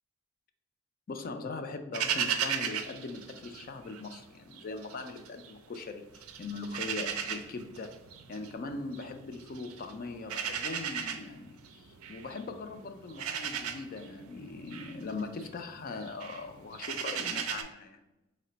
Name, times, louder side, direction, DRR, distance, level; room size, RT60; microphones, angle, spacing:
voice 1, 1.1-7.9 8.3-18.0, left 3 dB, 40° left, 7 dB, 0.3 m, -40 dB
sound 1, 1.9-4.2 4.5-5.8 6.1-17.6, right 8 dB, 85° right, 0.4 m, -36 dB
4.7 x 2.1 x 3.8 m, 1.0 s
head